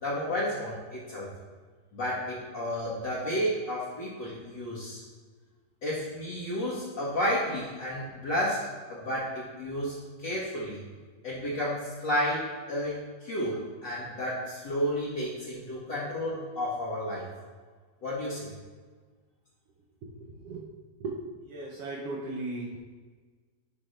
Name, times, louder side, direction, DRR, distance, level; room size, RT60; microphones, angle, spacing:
voice 1, 0.0-1.3 1.9-5.0 5.8-10.0 10.2-10.8 11.2-17.3 18.0-18.5, equal, 45° left, -9 dB, 1.6 m, -32 dB
voice 2, 20.2-20.6 21.0-21.1 21.5-22.8, right 3 dB, 90° right, -2 dB, 1.3 m, -36 dB
10.0 x 5.6 x 3.3 m, 1.4 s
omnidirectional pair, 4.0 m